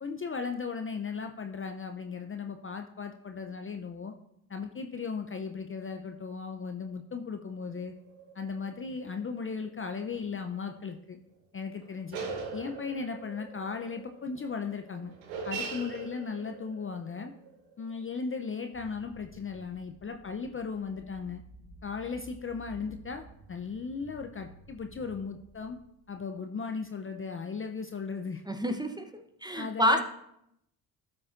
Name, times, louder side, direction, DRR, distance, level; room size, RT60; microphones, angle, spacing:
voice 1, 0.0-4.1 4.5-7.9 8.3-11.2 11.5-12.2 12.5-15.1 15.4-17.3 17.8-21.4 21.8-23.2 23.5-25.8 26.1-28.4 29.5-30.0, left 5 dB, 25° left, 6 dB, 0.6 m, -36 dB
sound 1, 7.7-9.5 10.1-10.3 10.7-10.8 11.8-18.1, right 4 dB, 90° right, 1.0 m, -42 dB
sound 2, 18.7-26.2, right 2 dB, 55° left, 1.9 m, -53 dB
voice 2, 28.5-30.0, equal, 10° right, 7 dB, 0.9 m, -28 dB
12.5 x 6.3 x 2.6 m, 0.77 s
hypercardioid pair, 50°, 49 cm